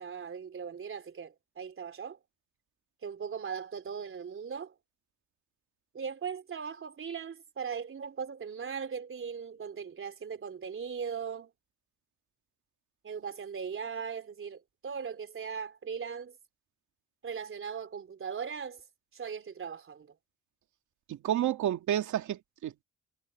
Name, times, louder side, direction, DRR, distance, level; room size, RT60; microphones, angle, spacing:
voice 1, 0.0-2.2 3.0-4.7 5.9-11.5 13.0-16.4 17.2-18.8 19.1-20.1, right 6 dB, 45° right, 3.6 m, -39 dB
voice 2, 21.1-22.8, right 11 dB, 75° right, 2.4 m, -30 dB
cardioid pair, 90°, 30 cm